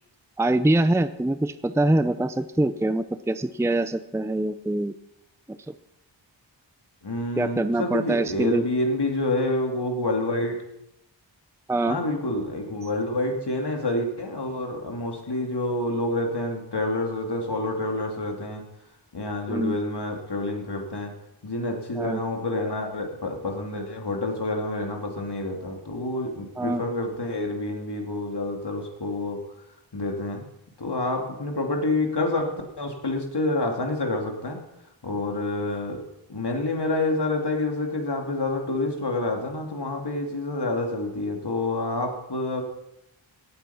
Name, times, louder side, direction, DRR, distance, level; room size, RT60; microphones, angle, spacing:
voice 1, 0.4-4.9 5.7-5.8 7.4-8.6 11.7-12.0 19.5-19.8 22.0-22.2 26.6-26.8, right 1 dB, 5° right, 12 dB, 0.6 m, -24 dB
voice 2, 7.0-10.5 11.9-18.6 19.1-21.1 21.4-29.4 29.9-30.4 30.8-34.6 35.0-36.0 36.3-42.6, left 2 dB, 60° left, 2 dB, 2.8 m, -28 dB
17.5 x 8.3 x 5.7 m, 0.86 s
wide cardioid pair, 45°, 46 cm